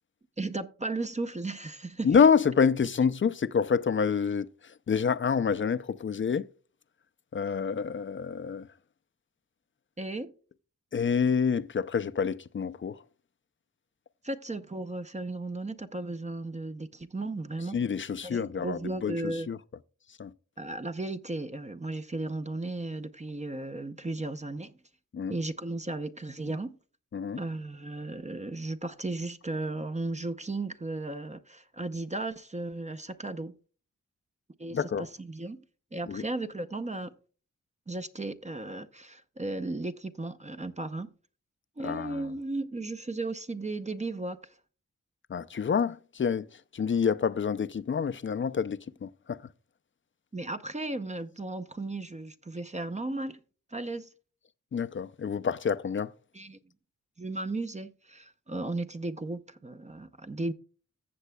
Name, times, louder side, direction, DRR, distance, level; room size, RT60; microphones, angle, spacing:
voice 1, 0.4-2.1 10.0-10.3 14.2-17.8 18.2-19.5 20.6-24.8 25.3-26.8 27.3-33.5 34.6-35.6 35.9-37.1 37.9-41.1 41.8-44.4 50.3-53.4 53.7-54.1 56.3-56.6 57.2-60.5, right 2 dB, 20° right, 0.7 m, -35 dB
voice 2, 2.0-6.5 7.3-8.7 10.9-13.0 17.7-19.6 20.2-20.3 25.1-25.4 27.1-27.4 34.7-35.1 36.1-36.2 41.8-42.3 45.3-49.4 54.7-56.1, left 6 dB, 40° left, 0.5 m, -27 dB
14.5 x 7.4 x 2.2 m
wide cardioid pair, 70°, 31 cm